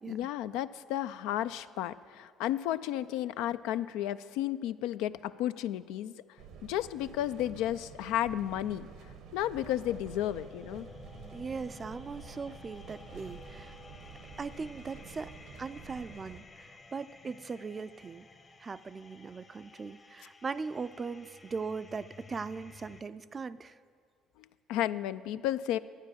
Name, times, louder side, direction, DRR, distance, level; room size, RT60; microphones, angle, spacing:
voice 1, 0.0-6.1 6.6-8.9 9.3-10.9 24.4-25.8, left 12 dB, 75° left, 13 dB, 0.3 m, -33 dB
sound 1, 6.4-16.4, right 5 dB, 75° right, 1.0 m, -50 dB
sound 2, 9.6-23.0, left 4 dB, 35° left, 0.9 m, -53 dB
voice 2, 11.3-13.8 14.4-18.3 18.6-23.8, right 4 dB, 35° right, 14 dB, 0.4 m, -40 dB
12.0 x 8.8 x 7.2 m, 2.1 s
hypercardioid pair, 60°, 0 cm